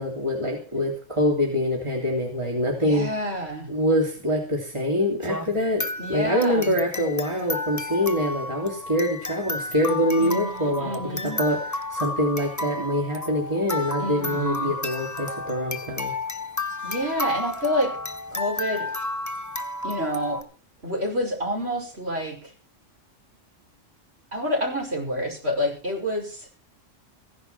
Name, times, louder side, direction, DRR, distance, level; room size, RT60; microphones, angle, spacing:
voice 1, 0.0-3.1 3.7-5.8 6.1-11.6 11.9-16.1, equal, 25° right, 0 dB, 3.2 m, -25 dB
voice 2, 2.8-3.7 6.0-6.7 10.2-11.4 14.0-14.7 16.8-17.9 18.3-18.9 19.8-20.4 20.8-22.4 24.3-26.5, equal, 55° right, 1 dB, 5.7 m, -28 dB
sound 1, 5.2-20.4, left 2 dB, 15° left, 1.1 m, -32 dB
15.5 x 11.0 x 5.7 m, 0.36 s
omnidirectional pair, 1.3 m